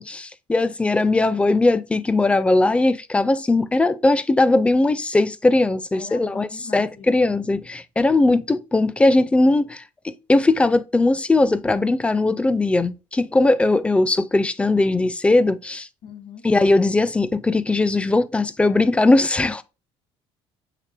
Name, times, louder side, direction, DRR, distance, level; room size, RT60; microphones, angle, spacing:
voice 1, 0.0-15.9 16.4-19.6, left 2 dB, 10° left, 0.3 m, -19 dB
voice 2, 5.9-7.4 16.0-16.4, left 6 dB, 70° left, 1.2 m, -41 dB
6.6 x 3.2 x 2.2 m
cardioid pair, 130°, 11 cm